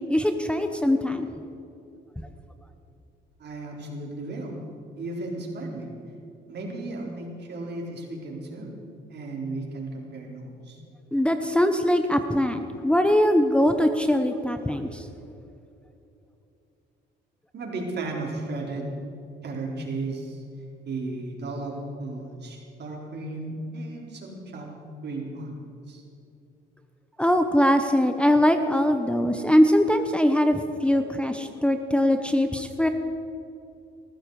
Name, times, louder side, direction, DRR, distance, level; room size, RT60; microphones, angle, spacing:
voice 1, 0.1-1.3 11.1-15.0 27.2-32.9, equal, 5° left, 6 dB, 1.0 m, -22 dB
voice 2, 3.4-4.5 5.0-5.9 6.5-8.7 9.1-10.8 17.5-18.9 19.4-20.4 20.8-24.7 25.0-25.6 25.9-26.0, right 2 dB, 60° right, -1 dB, 4.2 m, -34 dB
20.5 x 14.0 x 4.9 m, 2.8 s
cardioid pair, 90°, 20 cm